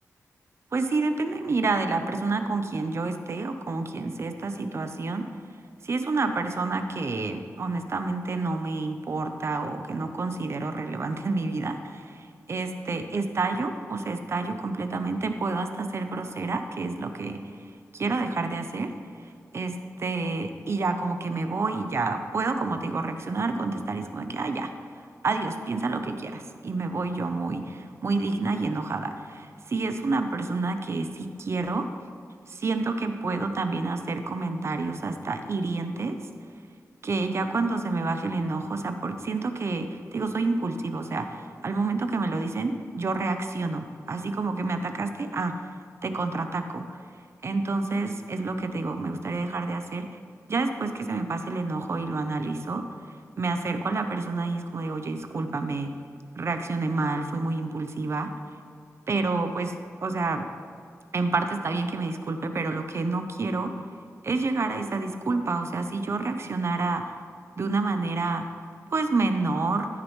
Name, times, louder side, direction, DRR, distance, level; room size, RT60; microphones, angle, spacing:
voice 1, 0.7-5.3 5.8-17.4 17.9-18.9 19.5-24.7 25.2-31.9 32.5-36.2 37.0-45.5 46.0-47.0 47.4-50.1 50.5-52.8 53.4-55.9 56.4-58.3 59.1-59.7 60.0-60.5 61.1-63.7 64.2-67.1 67.6-68.4 68.9-69.9, right 3 dB, 50° right, 7 dB, 0.7 m, -29 dB
14.0 x 6.5 x 3.2 m, 2.3 s
wide cardioid pair, 130°, 6 cm